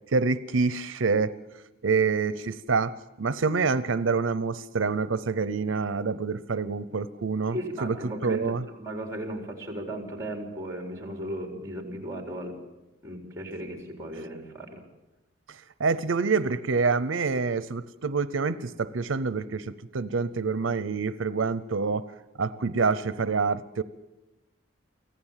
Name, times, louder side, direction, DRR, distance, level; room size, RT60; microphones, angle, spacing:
voice 1, 0.1-1.4 1.8-8.0 8.2-8.6 15.5-22.1 22.4-23.8, right 4 dB, 90° right, 15 dB, 0.7 m, -27 dB
voice 2, 7.5-8.5 8.8-12.6 13.0-14.8, right 1 dB, 15° right, 2 dB, 3.8 m, -36 dB
24.5 x 15.5 x 7.4 m, 1.0 s
head